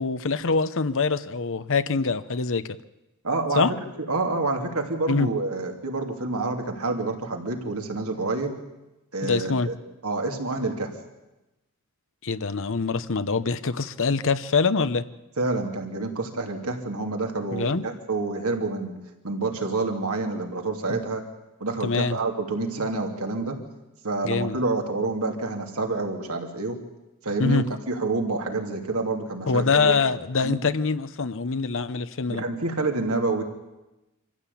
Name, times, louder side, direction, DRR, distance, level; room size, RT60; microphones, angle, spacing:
voice 1, 0.0-2.6 3.6-3.7 5.1-5.3 9.2-9.7 12.2-15.0 17.5-17.8 20.9-21.0 21.8-22.2 24.2-24.6 27.4-27.7 29.5-32.4, left 4 dB, 60° left, 12 dB, 0.8 m, -24 dB
voice 2, 3.2-3.7 4.1-8.6 9.1-9.8 10.0-10.9 15.4-18.9 19.2-21.3 21.6-23.6 24.0-26.8 27.2-29.9 30.4-30.6 32.3-33.4, right 3 dB, 80° right, 3 dB, 2.8 m, -28 dB
25.5 x 15.0 x 8.5 m, 1.0 s
head